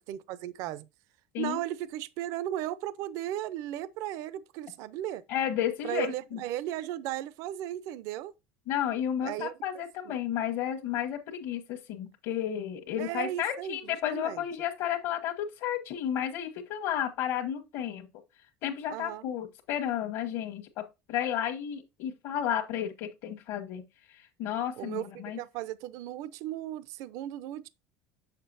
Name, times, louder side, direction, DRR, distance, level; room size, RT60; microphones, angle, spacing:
voice 1, 0.1-0.9 1.4-5.2 5.8-8.3 9.2-9.5 10.1-10.2 13.0-14.4 18.9-19.3 24.8-27.7, right 13 dB, 65° right, 0.5 m, -36 dB
voice 2, 5.3-6.4 8.7-18.1 18.6-23.8 24.1-25.4, left 10 dB, 65° left, 1.1 m, -32 dB
7.2 x 6.6 x 2.6 m
supercardioid pair, 130°, 6 cm